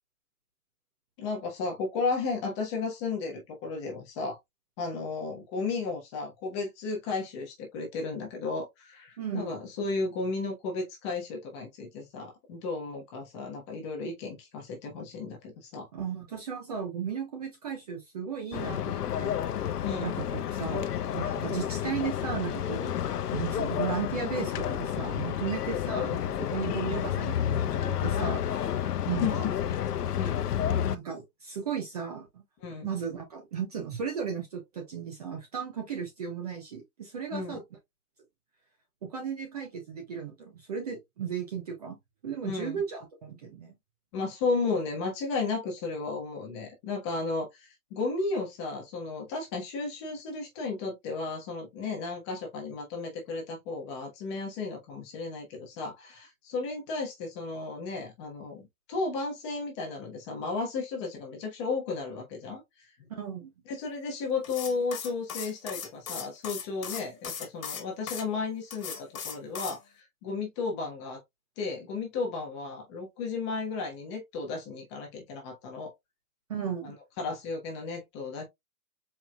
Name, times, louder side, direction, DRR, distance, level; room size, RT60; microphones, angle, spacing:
voice 1, 1.2-4.4 4.8-15.9 19.8-20.1 26.6-26.8 29.2-29.5 30.2-30.4 32.6-32.9 37.3-37.6 42.4-42.8 44.1-63.1 63.7-68.9 69.2-71.2 71.6-75.9 76.8-78.4, left 4 dB, 20° left, 1.0 m, -34 dB
voice 2, 9.2-9.5 15.9-19.4 20.0-22.9 23.3-29.5 30.8-32.4 32.8-37.6 39.0-42.0 42.2-43.7 63.1-63.5 76.5-77.0, right 7 dB, 25° right, 0.7 m, -35 dB
sound 1, 18.5-31.0, left 10 dB, 85° left, 0.7 m, -30 dB
sound 2, 64.4-68.2 68.7-69.8, left 7 dB, 65° left, 1.5 m, -38 dB
4.5 x 3.5 x 2.2 m
hypercardioid pair, 160°, 46 cm